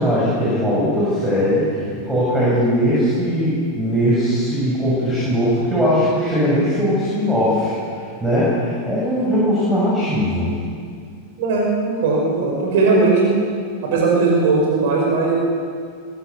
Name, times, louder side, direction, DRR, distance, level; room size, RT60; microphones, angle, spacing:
voice 1, 0.0-10.5, equal, 10° right, -8 dB, 7.2 m, -19 dB
voice 2, 11.4-13.3 13.8-15.3, right 3 dB, 50° right, -1 dB, 5.5 m, -18 dB
22.0 x 18.0 x 7.0 m, 2.2 s
figure-of-eight pair, 90°, 0 cm